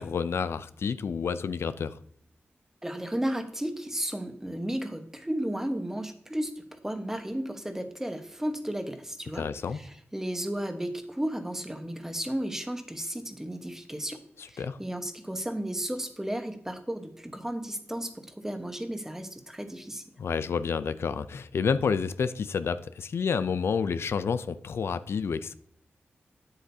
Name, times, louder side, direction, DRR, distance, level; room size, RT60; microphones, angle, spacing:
voice 1, 0.0-2.0 9.3-9.8 14.4-14.8 20.2-25.5, left 6 dB, 80° left, 0.4 m, -29 dB
voice 2, 2.8-9.5 9.7-14.2 14.5-20.0, right 1 dB, 10° right, 1.1 m, -34 dB
8.9 x 8.0 x 2.8 m
wide cardioid pair, 80°, 4 cm